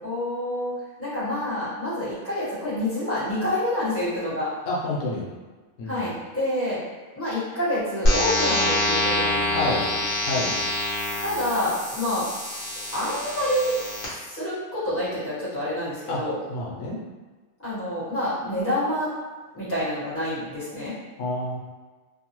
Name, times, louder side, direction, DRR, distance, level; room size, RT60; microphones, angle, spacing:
voice 1, 0.0-4.5 5.8-6.8 7.1-10.0 10.4-10.5 11.2-12.3 12.9-13.8 14.1-16.4 17.6-19.1 19.5-20.9, left 1 dB, 10° left, -12 dB, 1.1 m, -28 dB
voice 2, 4.7-5.3 5.8-6.1 9.5-9.8 10.3-10.5 16.1-16.2 16.5-17.0 21.2-21.6, left 2 dB, 90° left, -4 dB, 1.0 m, -28 dB
sound 1, 8.0-14.0, left 1 dB, 50° left, 1.0 m, -26 dB
2.7 x 2.2 x 2.9 m, 1.3 s
omnidirectional pair, 1.2 m